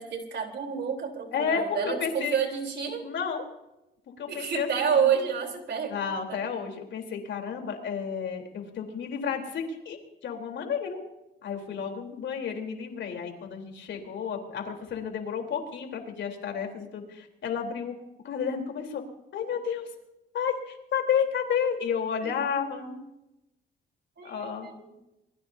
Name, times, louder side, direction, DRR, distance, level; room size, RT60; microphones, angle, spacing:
voice 1, 0.0-3.1 4.3-6.5 22.2-22.4 24.2-25.0, right 7 dB, 60° right, 3 dB, 3.8 m, -29 dB
voice 2, 1.3-2.3 3.0-3.4 4.2-5.1 5.9-10.0 10.2-11.0 11.4-17.9 18.2-19.0 19.3-19.9 20.3-23.1 24.2-24.7, left 7 dB, 70° left, 3 dB, 3.7 m, -31 dB
24.5 x 21.0 x 2.8 m, 0.91 s
cardioid pair, 90°, 20 cm